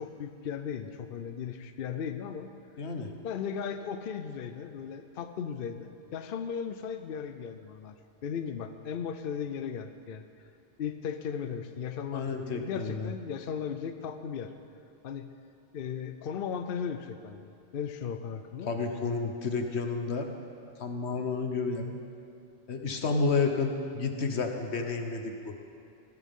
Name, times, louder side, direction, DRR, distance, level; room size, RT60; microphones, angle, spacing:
voice 1, 0.0-2.5 3.2-7.9 8.2-10.3 10.8-14.5 15.0-15.3 15.7-18.7, left 7 dB, 60° left, 8 dB, 0.8 m, -36 dB
voice 2, 2.8-3.1 12.1-13.1 18.7-20.3 20.8-22.0 22.7-25.6, left 4 dB, 90° left, 4 dB, 1.4 m, -31 dB
18.5 x 14.0 x 3.7 m, 2.4 s
omnidirectional pair, 1.1 m